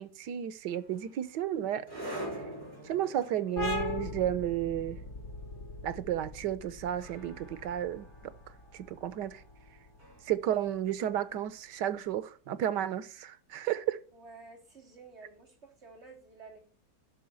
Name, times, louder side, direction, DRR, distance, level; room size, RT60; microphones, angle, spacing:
voice 1, 0.0-1.9 2.8-5.0 5.8-8.3 8.7-9.4 10.2-14.0, right 11 dB, 90° right, 1.4 m, -32 dB
sound 1, 0.7-11.8, right 1 dB, 55° right, 6.5 m, -47 dB
sound 2, 3.6-10.9, left 3 dB, 70° left, 3.6 m, -40 dB
voice 2, 14.1-16.6, right 3 dB, 40° right, 3.2 m, -52 dB
10.5 x 6.2 x 8.3 m
omnidirectional pair, 1.8 m